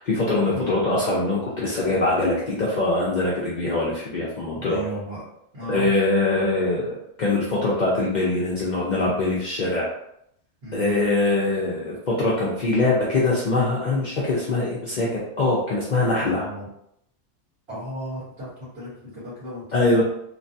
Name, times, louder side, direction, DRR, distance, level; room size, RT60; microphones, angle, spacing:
voice 1, 0.0-4.8 5.7-9.9 10.7-16.5 19.7-20.0, left 2 dB, 50° left, -6 dB, 0.6 m, -23 dB
voice 2, 4.5-5.2 5.5-5.9 10.6-11.0 16.4-16.7 17.7-20.0, equal, 55° right, -11 dB, 1.5 m, -35 dB
3.2 x 2.2 x 2.6 m, 0.76 s
omnidirectional pair, 1.2 m